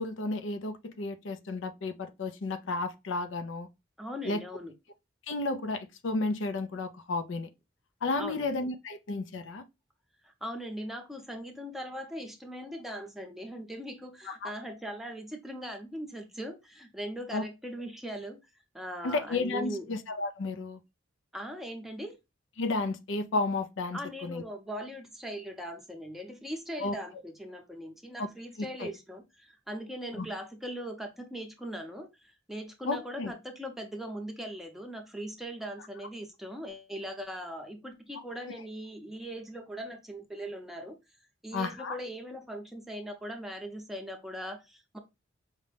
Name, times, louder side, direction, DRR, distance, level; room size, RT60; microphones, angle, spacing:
voice 1, 0.0-3.7 4.2-4.4 5.3-7.5 8.0-9.6 14.3-14.5 17.3-17.4 19.0-20.8 22.6-24.4 26.8-27.0 28.2-28.3 28.8-28.9 30.2-30.3 32.9-33.3 38.5-38.6 41.5-42.0, left 3 dB, 70° left, 0.5 m, -32 dB
voice 2, 4.0-4.7 8.2-8.4 10.2-18.4 18.7-19.8 21.3-22.2 23.9-41.0 41.4-45.0, equal, ahead, 0.7 m, -40 dB
5.0 x 2.2 x 3.3 m
head